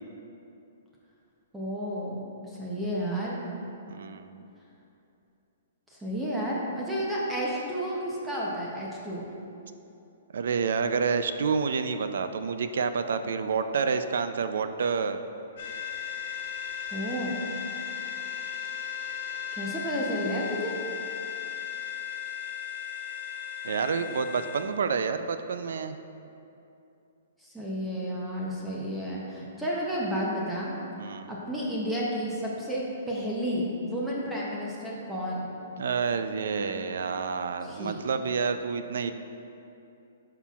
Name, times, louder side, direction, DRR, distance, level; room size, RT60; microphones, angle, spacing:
voice 1, 1.5-2.2 2.6-3.4 5.9-9.3 16.9-17.3 19.6-20.8 27.4-30.7 31.2-35.5 37.6-38.1, equal, 5° right, -6 dB, 0.6 m, -31 dB
voice 2, 3.9-4.4 10.3-15.2 23.6-26.0 31.0-31.3 35.8-39.1, right 5 dB, 65° right, 9 dB, 0.4 m, -28 dB
sound 1, 15.6-24.6, left 9 dB, 50° left, 1.3 m, -36 dB
10.0 x 5.7 x 2.4 m, 2.8 s
hypercardioid pair, 175°, 0 cm